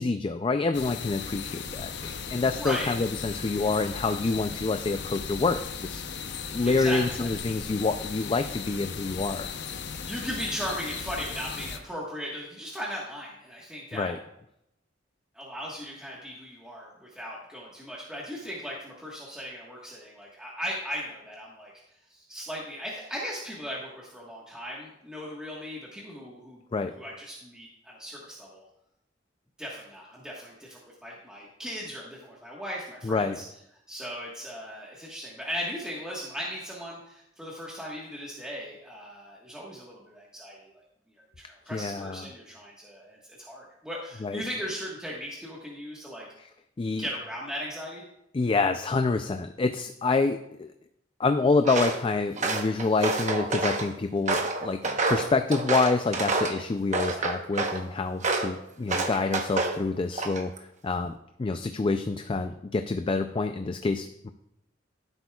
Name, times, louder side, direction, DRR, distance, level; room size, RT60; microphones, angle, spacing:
voice 1, 0.0-6.0 6.5-9.5 13.9-14.2 26.7-26.9 33.0-33.4 41.7-42.3 44.2-44.5 46.8-47.1 48.3-50.7 51.2-61.1 61.4-64.3, left 3 dB, 25° left, 7 dB, 0.4 m, -27 dB
sound 1, 0.7-11.8, left 6 dB, 60° left, 0.7 m, -37 dB
voice 2, 2.3-2.9 6.6-7.3 10.0-14.1 15.3-21.7 22.1-26.6 26.9-28.6 29.6-33.4 33.9-40.6 41.4-46.3 47.0-48.0, equal, 5° right, -5 dB, 1.4 m, -37 dB
Walk footsteps, 51.6-52.0 52.4-53.9 54.3-56.6 56.9-57.8 58.2-58.5 58.9-59.8 60.1-60.6, right 3 dB, 40° right, 1.0 m, -28 dB
15.0 x 8.0 x 2.3 m, 0.81 s
head